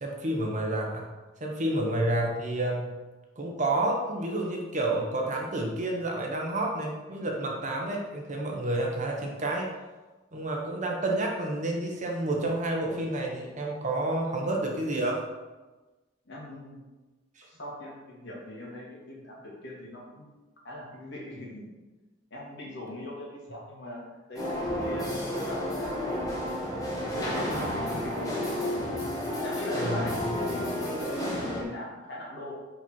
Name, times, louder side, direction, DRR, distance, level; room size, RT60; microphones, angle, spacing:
voice 1, 0.0-1.0 1.4-2.9 3.4-9.7 10.3-15.2 17.4-17.5 29.8-30.0, right 1 dB, 40° right, 0 dB, 1.2 m, -29 dB
voice 2, 16.3-16.8 17.4-20.4 20.6-21.6 22.3-26.3 27.0-28.3 29.4-32.5, left 1 dB, 60° left, -4 dB, 2.3 m, -41 dB
sound 1, 24.4-31.6, left 1 dB, 20° left, 1.5 m, -31 dB
5.8 x 5.4 x 4.5 m, 1.2 s
head